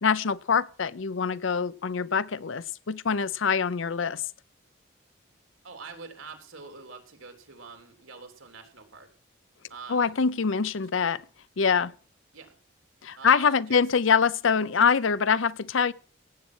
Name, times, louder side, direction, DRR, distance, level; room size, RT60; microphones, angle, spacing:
voice 1, 0.0-4.2 9.9-11.2 11.6-11.9 13.0-15.9, left 6 dB, 70° left, 0.6 m, -24 dB
voice 2, 5.6-9.1 9.7-10.1 12.3-12.6 13.2-13.8, right 4 dB, 90° right, 3.3 m, -45 dB
17.0 x 8.4 x 6.2 m
head